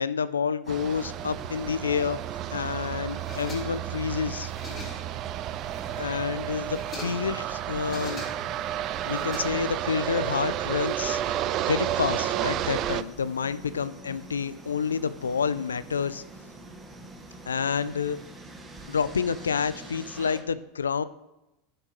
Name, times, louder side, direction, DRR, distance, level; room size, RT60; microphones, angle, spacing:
voice 1, 0.0-2.2 2.5-4.5 6.0-8.2 9.1-16.2 17.5-18.2 18.9-21.0, left 6 dB, 90° left, 15 dB, 0.4 m, -29 dB
sound 1, 0.6-20.4, right 1 dB, 20° right, 1.3 m, -46 dB
sound 2, 0.7-13.0, right 12 dB, 45° right, 0.4 m, -31 dB
sound 3, 3.1-4.0 4.3-5.2 5.6-6.2 6.6-7.3 7.7-8.6 9.0-10.0, left 3 dB, 30° left, 3.5 m, -43 dB
12.0 x 6.6 x 3.1 m, 0.94 s
hypercardioid pair, 90°, 0 cm